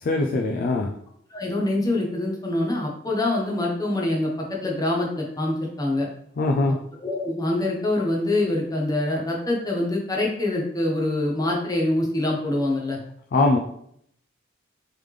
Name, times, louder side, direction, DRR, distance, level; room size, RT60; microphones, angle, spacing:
voice 1, 0.0-0.9 6.4-6.8 13.3-13.6, left 2 dB, 50° left, 2 dB, 0.4 m, -21 dB
voice 2, 1.3-6.1 7.0-13.0, left 1 dB, 20° left, -2 dB, 0.8 m, -25 dB
3.8 x 3.3 x 3.2 m, 0.70 s
head